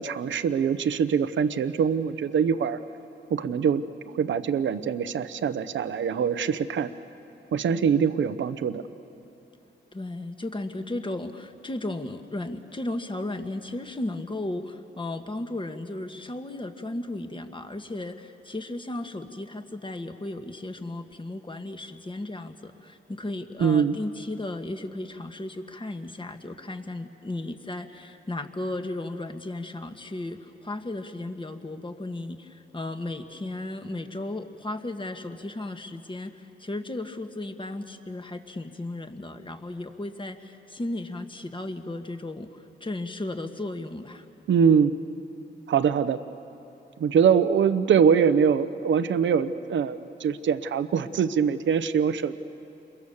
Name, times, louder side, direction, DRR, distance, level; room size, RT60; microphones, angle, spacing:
voice 1, 0.0-2.8 3.3-6.9 7.5-8.8 23.6-24.0 44.5-44.9 45.7-46.2 47.0-52.3, right 7 dB, 80° right, 12 dB, 0.9 m, -23 dB
voice 2, 9.9-44.2, left 2 dB, 25° left, 6 dB, 1.7 m, -35 dB
28.5 x 22.5 x 7.2 m, 2.9 s
cardioid pair, 70°, 19 cm